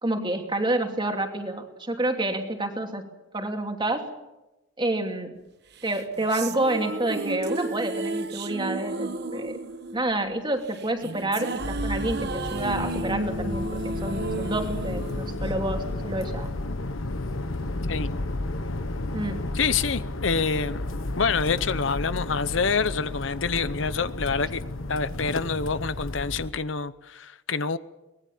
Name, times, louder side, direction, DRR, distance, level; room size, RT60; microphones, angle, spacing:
voice 1, 0.0-3.0 3.3-4.1 4.8-5.4 5.8-9.6 9.9-16.5 19.1-19.4, right 1 dB, 25° right, 4 dB, 2.7 m, -28 dB
sound 1, 5.8-16.2, right 2 dB, 55° right, 1.3 m, -33 dB
sound 2, 11.6-26.5, left 2 dB, 85° left, 1.4 m, -32 dB
voice 2, 19.5-24.6 24.9-27.8, left 5 dB, 65° left, 14 dB, 0.8 m, -27 dB
23.5 x 19.5 x 7.3 m, 1.0 s
head